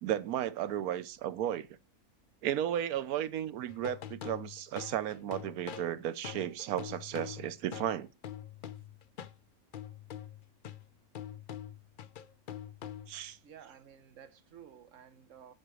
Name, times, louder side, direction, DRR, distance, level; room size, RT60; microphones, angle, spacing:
voice 1, 0.0-1.7 2.4-8.1 13.1-13.4, right 11 dB, 85° right, 1.2 m, -34 dB
sound 1, 3.7-9.4 9.7-13.3, left 10 dB, 60° left, 0.5 m, -45 dB
voice 2, 13.4-15.5, right 8 dB, 60° right, 1.3 m, -53 dB
9.0 x 4.9 x 6.3 m
omnidirectional pair, 1.5 m